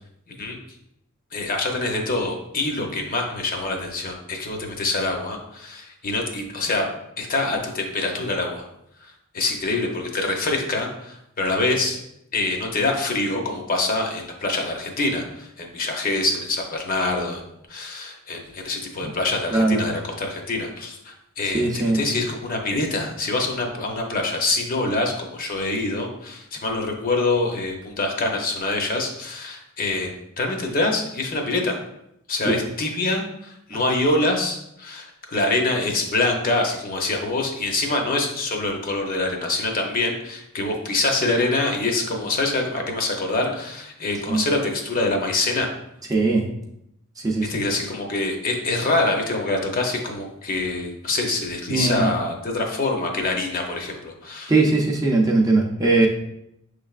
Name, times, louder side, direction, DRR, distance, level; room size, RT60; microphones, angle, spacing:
voice 1, 1.3-6.9 7.2-8.7 9.0-12.0 12.3-17.4 17.7-31.8 32.3-45.7 47.5-54.5, left 2 dB, 40° left, 2 dB, 0.7 m, -25 dB
voice 2, 19.5-19.8 21.4-22.0 32.4-32.5 44.3-44.4 46.1-46.5 47.2-47.5 51.7-52.1 54.5-56.1, right 3 dB, 15° right, -1 dB, 0.5 m, -20 dB
6.3 x 3.2 x 2.4 m, 0.79 s
head